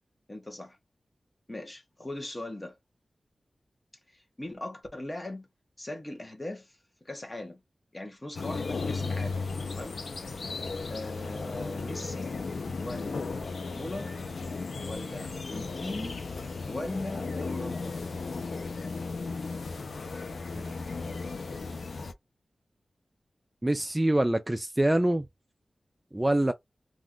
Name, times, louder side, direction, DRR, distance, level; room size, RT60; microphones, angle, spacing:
voice 1, 0.3-0.8 1.5-2.8 4.1-5.5 5.8-7.6 7.9-9.4 9.7-10.0 10.9-12.3 12.8-13.2 13.7-14.2 14.8-16.2 16.7-18.0, left 1 dB, 20° left, 0.9 m, -39 dB
sound 1, 8.3-22.1, left 4 dB, 75° left, 0.6 m, -35 dB
voice 2, 23.6-25.3 26.1-26.5, right 1 dB, 15° right, 0.3 m, -25 dB
2.5 x 2.3 x 3.7 m
wide cardioid pair, 115°, 0 cm